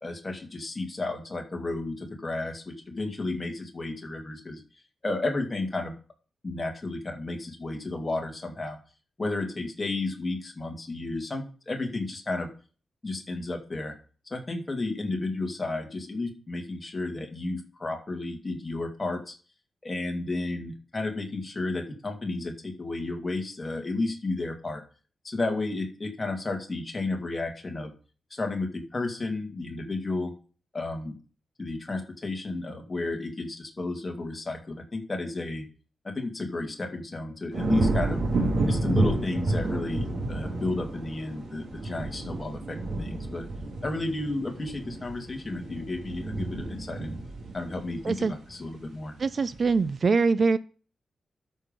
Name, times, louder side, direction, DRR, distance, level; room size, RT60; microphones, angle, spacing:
voice 1, 0.0-4.6 5.0-6.0 6.4-8.8 9.2-12.5 13.0-13.9 14.3-19.3 19.8-24.8 25.2-27.9 28.3-30.3 30.7-31.2 31.6-35.7 36.0-38.2 38.7-43.5 43.8-47.2 47.5-49.1, left 2 dB, 20° left, 2 dB, 2.1 m, -32 dB
sound 1, 37.5-48.8 49.3-49.7, right 2 dB, 80° right, 2.5 m, -30 dB
voice 2, 49.2-50.6, right 4 dB, 45° right, 15 dB, 0.4 m, -23 dB
12.5 x 5.5 x 5.3 m, 0.39 s
wide cardioid pair, 140°, 0 cm